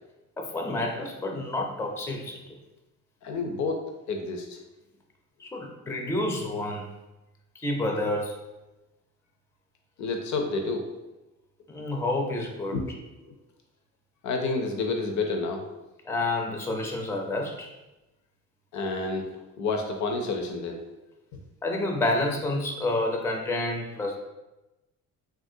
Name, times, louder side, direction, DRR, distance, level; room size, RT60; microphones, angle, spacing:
voice 1, 0.4-2.4 5.4-6.9 7.5-8.3 11.7-12.7 16.1-17.7 21.6-24.2, left 2 dB, 10° left, 2 dB, 0.4 m, -29 dB
voice 2, 3.2-4.6 10.0-10.9 12.7-12.9 13.2-13.3 14.2-15.6 18.7-19.3 19.6-20.8, left 3 dB, 70° left, 4 dB, 0.6 m, -29 dB
3.0 x 2.4 x 2.7 m, 1.0 s
cardioid pair, 90°, 30 cm